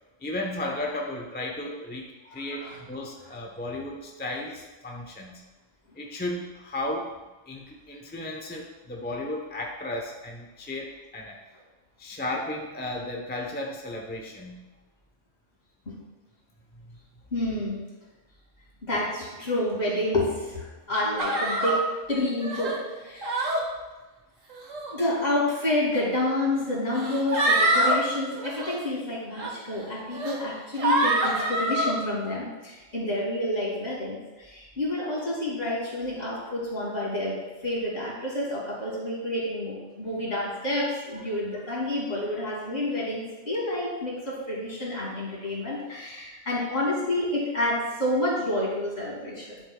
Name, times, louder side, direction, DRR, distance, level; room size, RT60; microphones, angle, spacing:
voice 1, 0.2-5.4 6.0-7.1 7.5-11.4 12.0-14.6 16.7-17.0 41.1-41.2, left 1 dB, 10° left, 0 dB, 0.6 m, -34 dB
voice 2, 2.2-2.8 15.9-16.0 17.3-17.8 18.8-21.8 22.1-23.6 24.9-49.6, left 1 dB, 45° left, -5 dB, 2.8 m, -29 dB
sound 1, 21.2-21.8 22.4-22.8 23.2-23.6 24.5-24.9 25.9-26.0 26.9-28.0 28.4-28.7 29.4-29.5 30.1-30.3 30.8-31.9, right 1 dB, 65° right, 1.8 m, -25 dB
11.0 x 7.3 x 2.3 m, 1.2 s
omnidirectional pair, 1.4 m